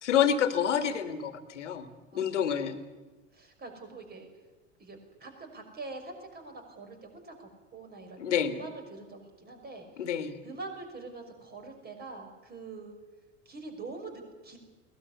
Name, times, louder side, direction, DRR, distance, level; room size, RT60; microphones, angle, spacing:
voice 1, 0.0-1.9 2.1-2.8 8.2-8.5 10.0-10.4, left 8 dB, 70° left, 10 dB, 2.1 m, -28 dB
voice 2, 2.1-2.6 3.3-4.3 4.8-10.1 10.4-12.9 13.5-14.6, right 3 dB, 25° right, 5 dB, 5.6 m, -44 dB
22.0 x 18.5 x 9.9 m, 1.2 s
figure-of-eight pair, 75°, 38 cm